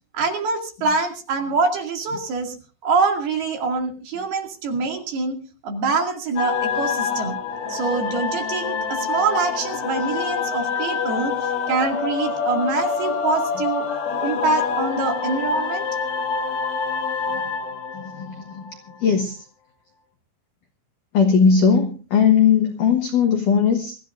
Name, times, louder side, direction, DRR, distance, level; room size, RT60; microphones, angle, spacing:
voice 1, 0.1-2.6 2.8-5.4 5.6-7.4 7.7-13.9 14.2-15.9, right 4 dB, 55° right, 3 dB, 3.9 m, -24 dB
sound 1, 6.4-18.9, left 5 dB, 60° left, 4.0 m, -26 dB
voice 2, 17.9-18.7 19.0-19.5 21.1-24.0, left 6 dB, 75° left, 5 dB, 1.9 m, -18 dB
25.5 x 14.5 x 2.5 m, 0.35 s
omnidirectional pair, 5.9 m